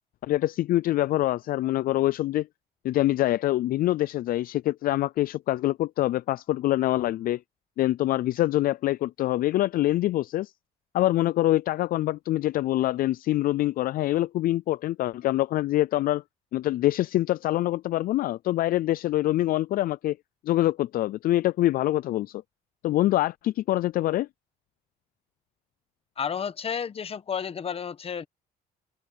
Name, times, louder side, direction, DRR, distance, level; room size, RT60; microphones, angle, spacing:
voice 1, 0.2-2.5 2.8-7.4 7.8-10.5 10.9-16.2 16.5-20.2 20.4-22.4 22.8-24.3, left 15 dB, 60° left, 0.4 m, -25 dB
voice 2, 26.2-28.3, left 7 dB, 35° left, 1.2 m, -31 dB
open air
cardioid pair, 110°, 17 cm